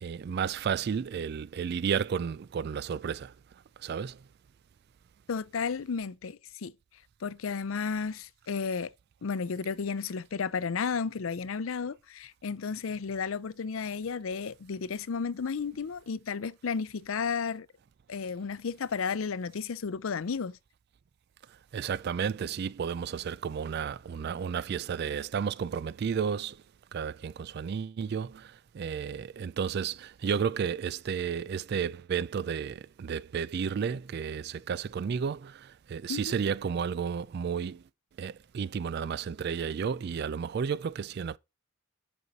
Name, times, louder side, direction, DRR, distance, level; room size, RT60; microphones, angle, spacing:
voice 1, 0.0-3.3 3.8-4.2 21.7-26.6 26.9-37.8 38.2-41.4, right 7 dB, 50° right, 0.3 m, -32 dB
voice 2, 5.3-6.7 7.2-8.9 9.2-17.7 18.1-20.6 36.1-36.3, left 5 dB, 75° left, 0.5 m, -33 dB
8.0 x 5.4 x 4.1 m
head